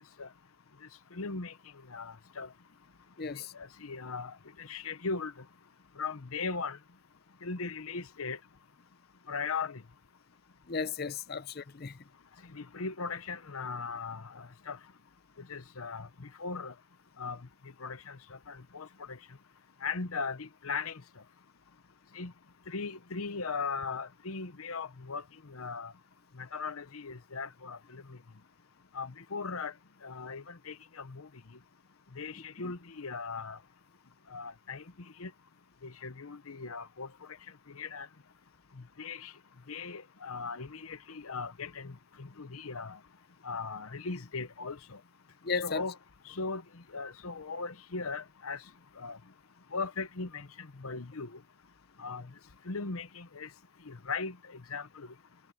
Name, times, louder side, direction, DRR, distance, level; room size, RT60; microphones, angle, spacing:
voice 1, 1.1-1.5 1.9-2.5 3.5-5.3 6.0-6.8 7.4-8.4 9.3-9.8 12.5-14.8 15.5-16.7 17.2-17.4 17.8-19.2 19.8-21.0 22.1-22.3 22.7-25.9 26.4-28.2 28.9-29.7 30.0-31.3 32.1-33.6 34.3-34.8 35.2-35.3 35.8-37.1 37.7-38.1 39.0-39.3 39.7-43.0 43.4-45.0 45.6-46.0 46.3-46.6 46.9-48.6 49.0-49.2 49.7-51.4 52.0-52.3 52.7-53.5 53.9-55.1, left 4 dB, 85° left, 1.0 m, -38 dB
voice 2, 3.2-3.5 10.7-12.0 45.4-45.8, left 5 dB, 45° left, 0.7 m, -35 dB
head